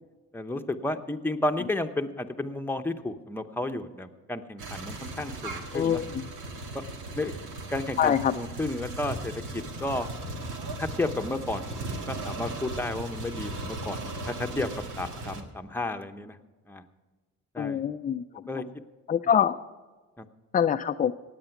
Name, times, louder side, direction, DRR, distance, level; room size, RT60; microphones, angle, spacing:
voice 1, 0.3-6.0 7.2-7.3 7.7-10.1 10.8-11.7 12.1-14.7 15.0-16.4 16.7-16.8 17.5-17.8 18.5-18.6 20.2-20.3, left 2 dB, 5° left, 6 dB, 0.9 m, -32 dB
sound 1, 4.6-15.4, right 2 dB, 85° right, 1.9 m, -37 dB
voice 2, 5.7-6.2 8.0-8.3 17.6-18.2 19.1-19.6 20.5-21.1, left 8 dB, 30° left, 8 dB, 0.4 m, -24 dB
17.0 x 9.0 x 5.9 m, 1.3 s
cardioid pair, 90°, 30 cm